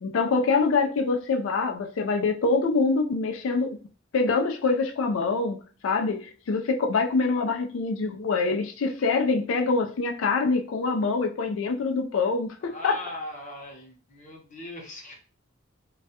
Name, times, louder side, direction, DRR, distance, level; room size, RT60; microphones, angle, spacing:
voice 1, 0.0-3.8 4.1-13.0, left 4 dB, 70° left, 0.4 m, -25 dB
voice 2, 12.6-15.1, left 1 dB, 35° left, 0.7 m, -40 dB
2.3 x 2.0 x 2.8 m
head